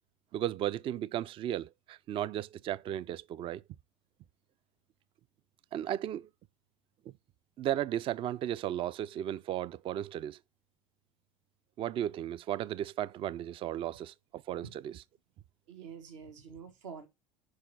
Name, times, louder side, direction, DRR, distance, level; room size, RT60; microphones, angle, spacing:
voice 1, 0.3-3.6 5.7-6.3 7.1-7.2 7.6-10.4 11.8-15.0, right 11 dB, 35° right, 0.4 m, -35 dB
voice 2, 15.7-17.1, right 6 dB, 70° right, 1.6 m, -46 dB
5.6 x 4.7 x 4.5 m
hypercardioid pair, 75°, 16 cm